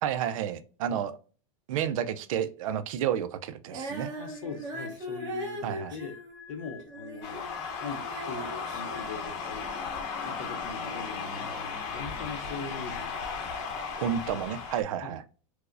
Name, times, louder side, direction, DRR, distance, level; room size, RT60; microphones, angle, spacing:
voice 1, 0.0-1.1 1.7-4.1 5.6-5.9 11.6-11.7 14.0-15.2, right 9 dB, 75° right, 13 dB, 0.4 m, -31 dB
Female singing, 3.7-7.5 7.8-9.9, right 1 dB, 25° right, 1.0 m, -40 dB
sound 1, 3.8-10.2 10.4-10.7, left 6 dB, 55° right, 1.4 m, -54 dB
voice 2, 4.1-6.1 6.5-7.5 7.8-9.6 10.2-11.6 11.9-13.2 15.0-15.2, left 5 dB, 75° left, 8 dB, 0.7 m, -41 dB
sound 2, 7.2-14.8, left 5 dB, 40° left, 0.7 m, -36 dB
4.6 x 2.1 x 2.5 m, 0.39 s
supercardioid pair, 155°, 18 cm